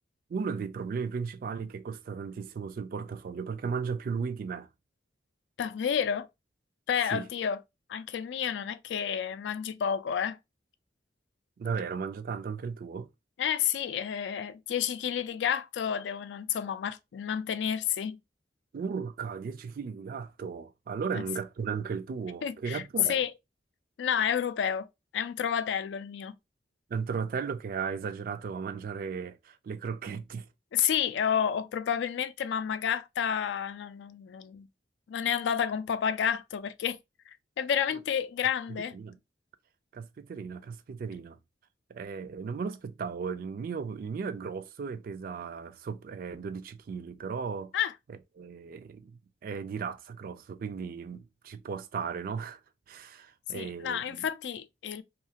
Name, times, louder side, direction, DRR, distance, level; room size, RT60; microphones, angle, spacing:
voice 1, 0.3-4.7 7.1-7.3 11.6-13.1 18.7-23.2 26.9-30.5 37.9-38.0 38.7-39.2 39.9-41.4 41.9-47.7 48.1-52.6 52.9-54.3, right 5 dB, 50° right, 0.3 m, -36 dB
voice 2, 5.6-6.3 6.9-7.6 7.9-10.4 13.4-18.2 21.1-21.2 22.4-22.8 23.1-23.3 24.0-24.9 25.1-26.4 30.7-34.7 35.1-37.0 37.3-39.0 47.7-47.9 53.5-55.0, left 8 dB, 85° left, 0.3 m, -30 dB
2.7 x 2.4 x 2.7 m
head